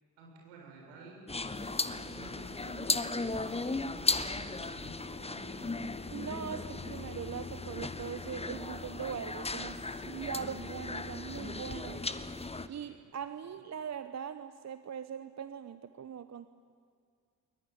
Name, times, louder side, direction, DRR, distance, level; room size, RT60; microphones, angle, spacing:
voice 1, 0.2-1.4 1.8-5.9 11.9-12.1 12.7-12.9 13.4-13.5, right 3 dB, 65° right, -1 dB, 7.6 m, -51 dB
sound 1, 1.3-12.7, left 3 dB, 10° left, 1.2 m, -36 dB
voice 2, 6.1-9.8 10.0-12.0 12.7-16.5, right 8 dB, 35° right, 11 dB, 1.0 m, -41 dB
22.0 x 20.5 x 9.3 m, 2.2 s
figure-of-eight pair, 40°, 49 cm